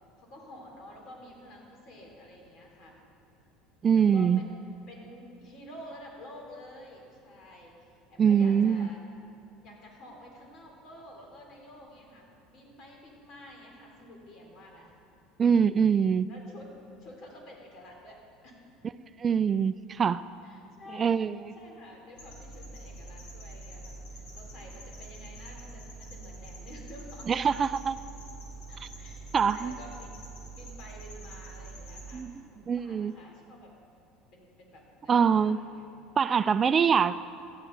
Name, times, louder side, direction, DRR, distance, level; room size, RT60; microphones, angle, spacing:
voice 1, 0.2-3.0 3.8-4.6 4.9-9.0 9.6-14.9 15.6-16.0 16.3-16.7 17.0-18.7 20.4-21.2 21.5-27.3 28.7-29.2 29.5-30.2 30.6-33.8 34.3-35.8 36.3-37.1, left 1 dB, 50° left, 0 dB, 3.6 m, -50 dB
voice 2, 3.8-4.4 8.2-8.9 15.4-16.3 19.2-20.2 20.9-21.4 27.3-28.0 29.3-29.7 32.1-33.1 35.1-35.6 36.2-37.1, right 7 dB, 35° right, 15 dB, 0.3 m, -24 dB
sound 1, 22.2-32.1, right 2 dB, 70° left, 3.5 m, -45 dB
17.0 x 11.5 x 4.0 m, 2.5 s
hypercardioid pair, 75°, 0 cm